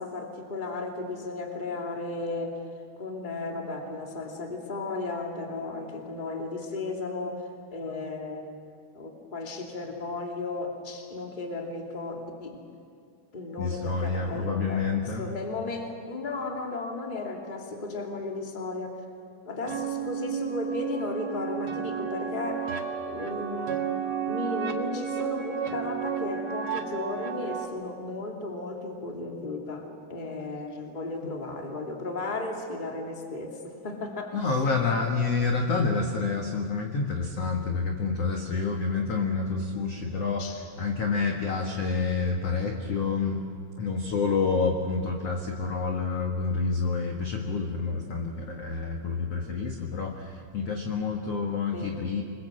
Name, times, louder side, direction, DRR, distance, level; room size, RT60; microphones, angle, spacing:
voice 1, 0.0-2.6 3.0-8.5 8.9-12.6 13.3-19.0 19.4-22.7 23.0-23.8 24.3-29.8 30.1-34.6 40.4-40.6 51.7-51.9, left 3 dB, 15° left, 1 dB, 2.0 m, -35 dB
voice 2, 13.6-15.2 34.3-40.4 40.8-43.4 43.8-52.2, left 4 dB, 55° left, 2 dB, 1.9 m, -28 dB
sound 1, 19.7-27.7, right 7 dB, 80° right, 1.2 m, -32 dB
26.5 x 21.5 x 7.8 m, 2.2 s
omnidirectional pair, 4.7 m